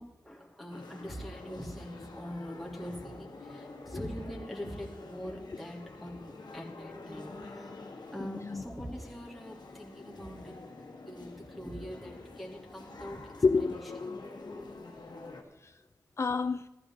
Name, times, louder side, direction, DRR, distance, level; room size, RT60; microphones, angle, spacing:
voice 1, 0.0-10.6 11.0-13.2 13.6-13.7, equal, ahead, 3.2 m, -43 dB
sound 1, 0.7-15.4, left 3 dB, 90° left, 1.7 m, -47 dB
voice 2, 8.2-8.6 13.4-14.9 15.6-15.8 16.2-16.7, left 4 dB, 40° left, 0.3 m, -31 dB
14.5 x 13.0 x 3.9 m
wide cardioid pair, 70°, 7 cm